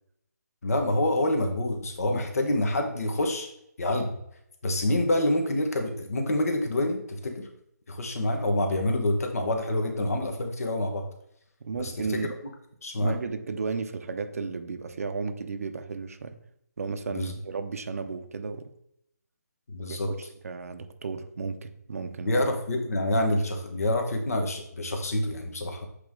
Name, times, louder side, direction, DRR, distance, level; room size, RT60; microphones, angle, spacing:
voice 1, 0.6-3.5 3.8-4.2 4.6-7.5 7.9-11.1 11.7-12.2 12.8-13.1 17.1-17.3 19.7-20.1 22.2-25.9, left 1 dB, 60° left, 4 dB, 1.3 m, -27 dB
voice 2, 11.6-12.3 13.0-16.4 16.8-18.7 19.9-22.4, right 4 dB, 60° right, 7 dB, 0.7 m, -34 dB
8.2 x 3.2 x 3.7 m, 0.74 s
figure-of-eight pair, 155°, 9 cm